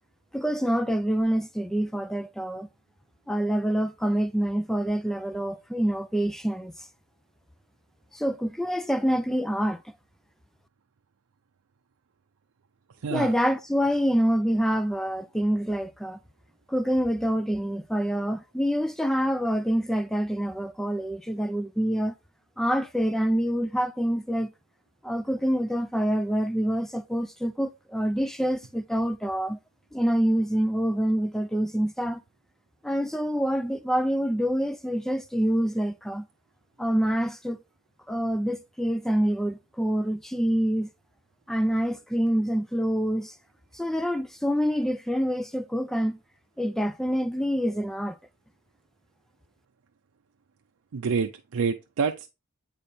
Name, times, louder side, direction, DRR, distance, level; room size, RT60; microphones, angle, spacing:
voice 1, 0.3-2.7 3.3-6.7 8.1-9.8 13.1-16.2 16.7-22.1 22.6-24.5 25.0-29.6 29.9-32.2 32.8-36.3 36.8-37.6 38.1-40.9 41.5-43.3 43.7-46.2 46.6-48.2, equal, ahead, 0.3 m, -26 dB
voice 2, 13.0-13.3 50.9-52.3, right 5 dB, 90° right, 0.5 m, -27 dB
8.1 x 4.2 x 3.4 m
head